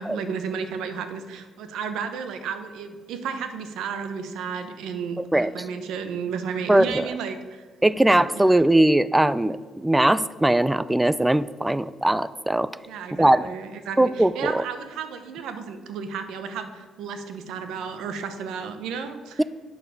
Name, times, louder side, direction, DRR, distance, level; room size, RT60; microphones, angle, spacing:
voice 1, 0.0-7.7 8.3-8.6 12.9-19.4, right 6 dB, 85° right, 8 dB, 0.9 m, -33 dB
voice 2, 5.2-5.5 6.7-7.1 7.8-12.7 13.1-13.4 14.0-14.6, right 1 dB, 10° right, 17 dB, 0.3 m, -20 dB
8.4 x 6.7 x 5.1 m, 1.4 s
cardioid pair, 90°, 0 cm